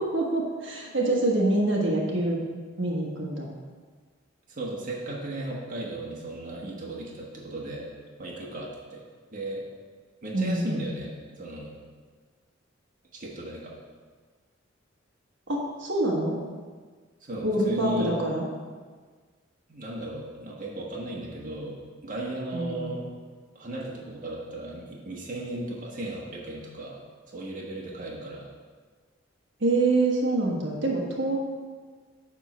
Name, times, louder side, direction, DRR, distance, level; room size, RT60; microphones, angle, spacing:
voice 1, 0.0-2.4 2.8-3.5 10.3-10.8 15.5-16.4 17.4-18.5 22.5-22.9 29.6-31.4, right 2 dB, 65° right, -2 dB, 1.4 m, -25 dB
voice 2, 4.5-7.9 8.2-9.0 9.3-9.6 10.2-11.7 13.1-13.7 17.2-18.1 19.7-23.0 23.5-27.0 27.3-28.5, right 1 dB, 45° right, -4 dB, 1.3 m, -36 dB
9.4 x 3.7 x 6.1 m, 1.5 s
head